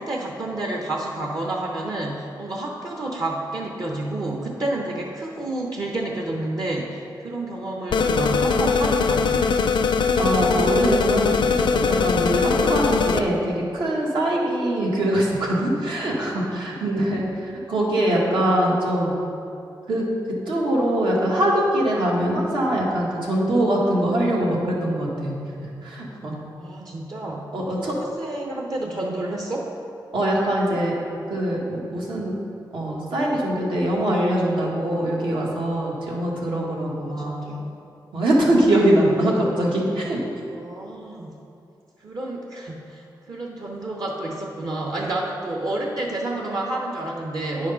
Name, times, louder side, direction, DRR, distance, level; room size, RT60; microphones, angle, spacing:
voice 1, 0.0-9.4 16.8-17.1 26.6-27.5 27.8-29.7 37.0-37.7 40.5-41.3 42.0-47.7, right 2 dB, 50° right, -1 dB, 0.8 m, -30 dB
sound 1, 7.9-13.2, left 5 dB, 75° left, 0.4 m, -21 dB
voice 2, 10.2-19.2 19.9-20.1 20.5-25.3 25.6-26.4 27.5-27.9 30.1-30.9 31.3-32.3 32.7-37.4 38.1-40.2, right 1 dB, 85° right, -4 dB, 1.8 m, -23 dB
9.5 x 5.0 x 5.6 m, 2.6 s
wide cardioid pair, 120°, 8 cm